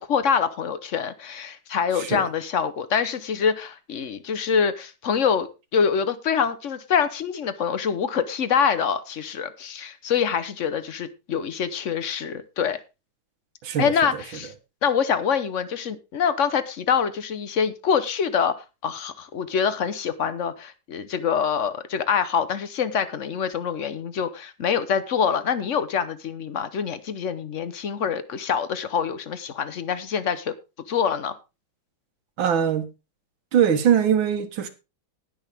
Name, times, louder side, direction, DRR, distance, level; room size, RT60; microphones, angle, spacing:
voice 1, 0.0-5.5 5.7-12.8 13.8-14.5 14.8-18.5 18.8-30.5 30.9-31.3, left 7 dB, 50° left, 0.9 m, -25 dB
voice 2, 13.6-13.9 32.4-32.9 33.5-34.7, right 8 dB, 70° right, 1.9 m, -21 dB
19.0 x 6.4 x 3.5 m
omnidirectional pair, 2.3 m